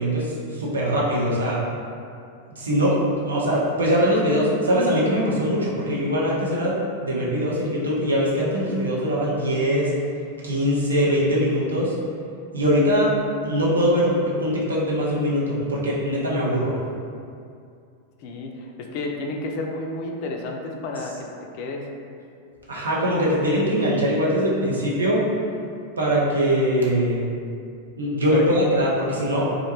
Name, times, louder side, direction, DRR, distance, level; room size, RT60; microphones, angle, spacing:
voice 1, 0.0-1.6 2.6-2.9 3.2-9.9 10.4-11.9 12.5-13.1 13.4-16.8 22.7-25.2 26.0-27.2 28.0-29.6, equal, 70° right, -5 dB, 0.5 m, -22 dB
voice 2, 18.2-21.3 21.5-21.9 28.3-28.4, left 2 dB, 45° left, 1 dB, 0.3 m, -31 dB
2.5 x 2.2 x 2.8 m, 2.4 s
figure-of-eight pair, 90°, 0 cm